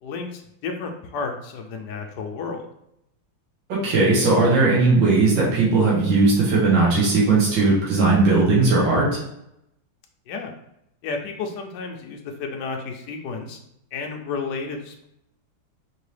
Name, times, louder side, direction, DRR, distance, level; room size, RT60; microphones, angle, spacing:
voice 1, 0.0-2.7 10.3-10.5 11.0-13.6 13.9-15.0, left 4 dB, 75° left, 2 dB, 1.1 m, -32 dB
voice 2, 3.7-9.2, right 3 dB, 75° right, -6 dB, 2.0 m, -18 dB
4.6 x 2.9 x 3.2 m, 0.79 s
omnidirectional pair, 2.1 m